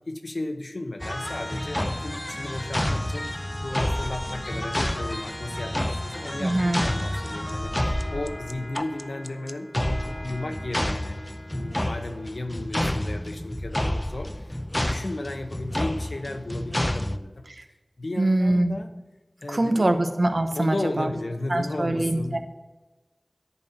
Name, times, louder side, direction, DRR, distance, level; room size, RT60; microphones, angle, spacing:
voice 1, 0.1-11.2 11.5-17.4 18.0-18.9 19.4-19.9 20.6-22.4, left 2 dB, 80° left, 6 dB, 0.9 m, -34 dB
sound 1, 1.0-17.2, left 1 dB, 20° left, 0.5 m, -29 dB
voice 2, 6.4-6.8 17.5-17.6 18.2-18.8 19.5-21.1 21.5-22.4, right 1 dB, 65° right, 7 dB, 1.0 m, -23 dB
10.5 x 4.3 x 7.6 m, 1.2 s
wide cardioid pair, 45°, 0 cm